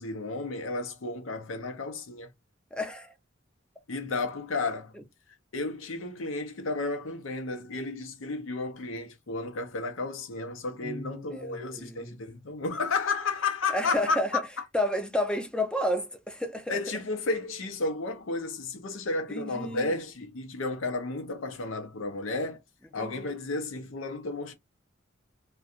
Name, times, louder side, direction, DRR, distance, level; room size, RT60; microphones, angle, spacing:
voice 1, 0.0-2.3 3.9-4.9 5.5-14.4 16.7-22.6 22.9-24.5, left 3 dB, 85° left, 0.7 m, -32 dB
voice 2, 2.7-3.1 4.9-5.0 10.8-12.2 13.7-14.4 14.7-16.8 19.3-19.9 23.0-23.3, left 1 dB, 5° left, 0.5 m, -31 dB
2.4 x 2.3 x 2.6 m
head